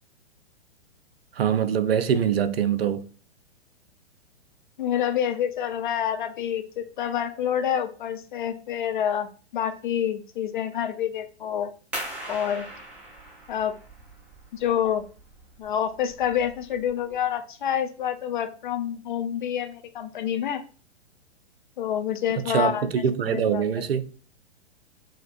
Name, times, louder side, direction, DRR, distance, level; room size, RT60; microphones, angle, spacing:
voice 1, 1.4-3.0 22.5-24.0, right 7 dB, 60° right, 0.6 m, -23 dB
voice 2, 4.8-11.7 12.3-12.7 13.5-13.7 14.5-15.0 15.6-20.6 21.8-22.8 23.3-23.9, left 9 dB, 45° left, 0.6 m, -27 dB
sound 1, 11.9-17.3, right 1 dB, 5° right, 0.4 m, -40 dB
7.2 x 2.9 x 2.5 m
figure-of-eight pair, 110°, 34 cm